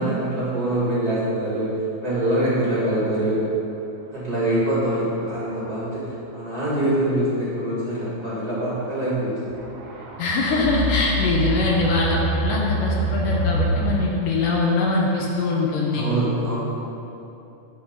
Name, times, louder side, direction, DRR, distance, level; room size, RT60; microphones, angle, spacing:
voice 1, 0.0-1.7 2.0-3.4 4.1-5.9 6.3-9.3 15.9-16.6, right 1 dB, 30° right, -9 dB, 2.1 m, -24 dB
sound 1, 4.6-4.7 5.4-5.7 6.7-6.8 8.7-9.0 9.5-13.9, right 1 dB, 65° right, 1.9 m, -26 dB
voice 2, 10.2-16.1, left 3 dB, 75° left, -2 dB, 2.3 m, -22 dB
10.0 x 6.3 x 5.4 m, 2.9 s
omnidirectional pair, 4.1 m